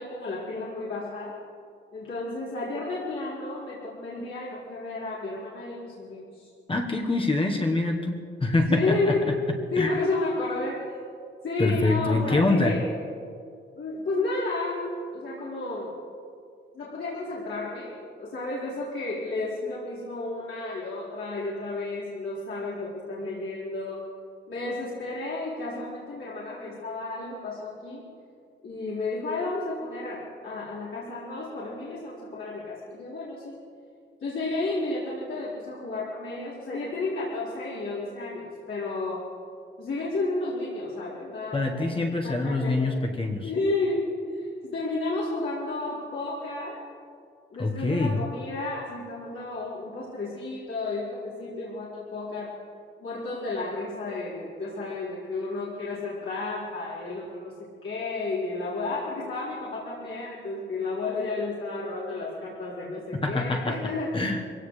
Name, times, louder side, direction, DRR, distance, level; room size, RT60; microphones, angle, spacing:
voice 1, 0.0-1.3 1.9-6.5 8.7-9.3 9.7-10.9 11.4-12.8 13.7-15.9 16.7-24.0 24.5-28.0 28.6-33.5 34.2-39.2 39.8-41.9 42.2-42.9 43.4-46.8 47.5-52.5 53.0-57.5 57.8-64.1, left 2 dB, 75° left, -10 dB, 4.7 m, -32 dB
voice 2, 6.7-9.1 9.8-10.0 11.6-12.7 41.5-43.5 47.6-48.2 63.2-63.8 64.1-64.5, left 2 dB, 25° left, 2 dB, 1.3 m, -25 dB
24.5 x 17.0 x 3.4 m, 2.2 s
wide cardioid pair, 155°, 20 cm